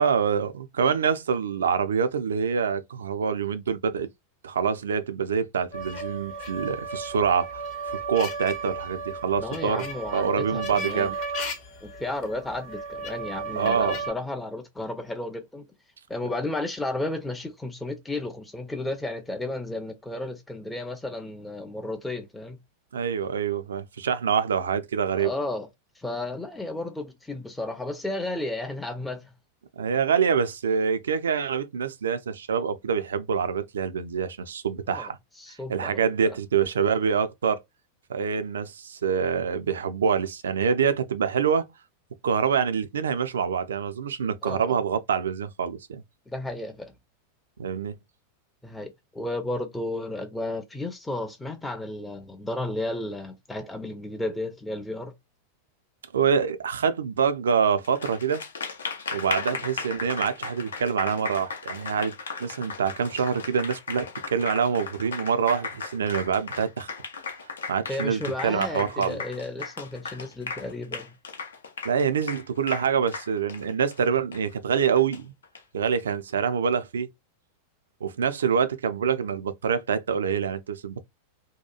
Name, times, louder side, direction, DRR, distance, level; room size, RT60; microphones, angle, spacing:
voice 1, 0.0-4.1 4.4-7.5 7.9-9.9 10.1-11.1 13.5-14.0 22.9-25.3 29.8-35.2 35.7-37.6 38.1-41.7 42.2-46.0 47.6-48.0 56.1-58.4 59.1-62.1 62.4-66.9 67.7-69.2 71.8-75.3 75.7-77.1 78.0-81.0, right 6 dB, 65° right, 0.3 m, -26 dB
sound 1, 5.7-14.1, right 3 dB, 40° left, 0.8 m, -34 dB
voice 2, 9.4-11.1 11.8-15.7 16.1-22.6 25.2-25.7 26.0-29.3 34.9-36.4 44.4-44.8 46.3-46.9 48.6-55.1 59.5-59.6 67.9-71.1, left 2 dB, 5° left, 0.5 m, -33 dB
Applause, 57.8-75.6, left 5 dB, 70° left, 0.5 m, -36 dB
2.8 x 2.2 x 2.2 m
figure-of-eight pair, 90°, 0 cm